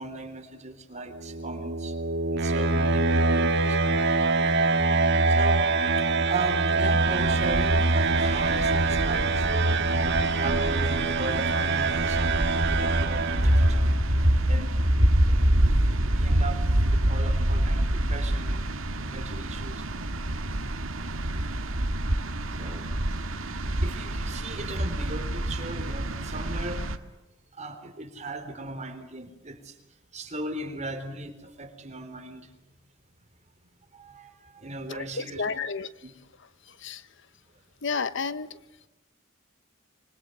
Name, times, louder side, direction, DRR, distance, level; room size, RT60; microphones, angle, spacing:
voice 1, 0.0-2.0 2.3-4.2 5.3-5.7 6.3-12.4 12.7-15.7 16.1-18.6 19.1-19.9 22.6-22.9 23.6-26.8 27.5-29.8 30.1-32.5 33.9-35.6 36.0-36.1, right 1 dB, 35° right, 7 dB, 3.8 m, -32 dB
sound 1, 1.1-14.0, right 3 dB, 60° right, 1.7 m, -24 dB
sound 2, 7.1-27.0, right 1 dB, 85° right, 1.9 m, -28 dB
voice 2, 34.9-35.9 36.8-37.0 37.8-38.5, left 5 dB, 65° left, 14 dB, 1.1 m, -31 dB
25.5 x 25.0 x 7.9 m, 0.99 s
head